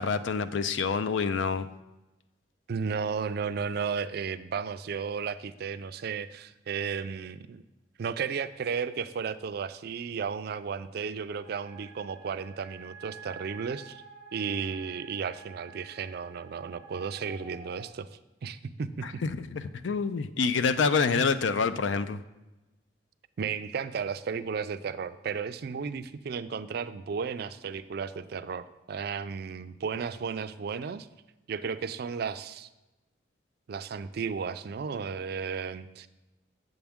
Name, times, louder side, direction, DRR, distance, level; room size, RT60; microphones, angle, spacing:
voice 1, 0.0-1.7 19.0-22.2, left 5 dB, 80° left, 12 dB, 0.4 m, -27 dB
voice 2, 2.7-7.6 8.0-14.0 14.3-18.1 18.4-19.2 21.1-21.3 23.4-31.1 31.5-32.7 33.7-36.1, right 6 dB, 55° right, 12 dB, 0.4 m, -34 dB
sound 1, 11.3-17.9, right 5 dB, 60° left, 2.6 m, -49 dB
7.8 x 7.1 x 3.5 m, 1.0 s
head